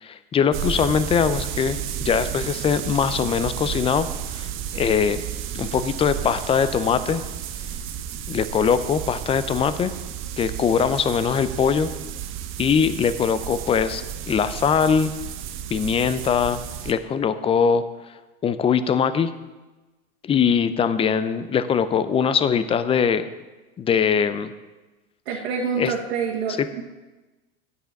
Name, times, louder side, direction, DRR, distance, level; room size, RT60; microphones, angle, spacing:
voice 1, 0.0-4.5 4.7-5.2 5.5-7.2 8.3-9.9 10.4-11.9 12.6-15.1 15.7-17.8 18.4-19.3 20.2-23.3 23.8-24.5 25.8-25.9 26.6-26.7, left 7 dB, 20° left, 13 dB, 0.5 m, -22 dB
sound 1, 0.5-16.9, right 10 dB, 40° right, 0.8 m, -32 dB
voice 2, 25.2-26.8, right 6 dB, 75° right, -2 dB, 1.7 m, -27 dB
9.2 x 6.9 x 5.9 m, 1.2 s
supercardioid pair, 120°, 32 cm